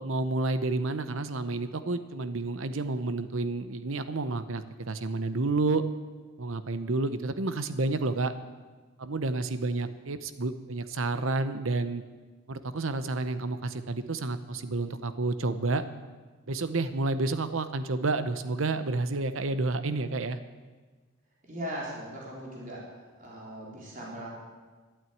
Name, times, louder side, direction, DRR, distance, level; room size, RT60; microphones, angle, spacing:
voice 1, 0.0-5.8 6.4-8.3 9.0-12.0 12.5-15.8 16.5-20.4, right 3 dB, 75° right, 11 dB, 0.8 m, -30 dB
voice 2, 21.5-22.9 23.2-24.3, equal, 40° right, -4 dB, 4.0 m, -39 dB
12.5 x 12.5 x 9.3 m, 1.3 s
head